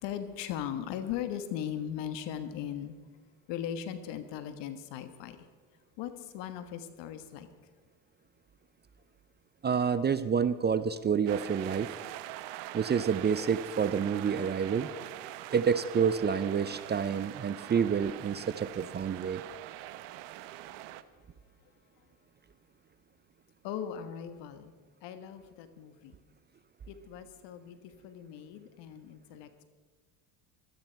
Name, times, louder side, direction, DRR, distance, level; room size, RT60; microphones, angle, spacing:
voice 1, 0.0-2.9 3.5-5.5 6.0-7.5 23.6-26.2 26.9-29.6, left 9 dB, 70° left, 10 dB, 1.5 m, -39 dB
voice 2, 9.6-11.9 12.7-14.9 15.5-19.4, right 7 dB, 25° right, 14 dB, 0.5 m, -28 dB
sound 1, 11.3-21.0, right 14 dB, 65° right, 0.9 m, -43 dB
16.5 x 12.5 x 4.6 m, 1.4 s
supercardioid pair, 90°, 45 cm